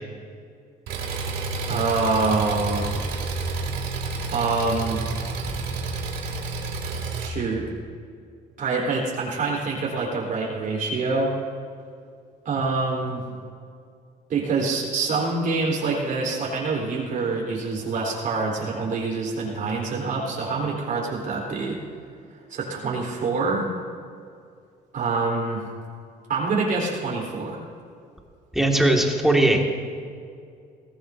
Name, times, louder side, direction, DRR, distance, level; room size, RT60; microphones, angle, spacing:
Engine, 0.9-7.3, right 3 dB, 75° right, 2.9 m, -30 dB
voice 1, 1.7-2.9 4.3-5.0 7.2-7.7 8.6-11.3 12.4-13.3 14.3-21.8 22.5-23.7 24.9-25.6 26.3-27.6, right 3 dB, 55° right, -3 dB, 4.0 m, -26 dB
voice 2, 28.5-29.7, right 1 dB, ahead, 0 dB, 2.0 m, -19 dB
22.0 x 16.5 x 2.7 m, 2.3 s
cardioid pair, 110°, 17 cm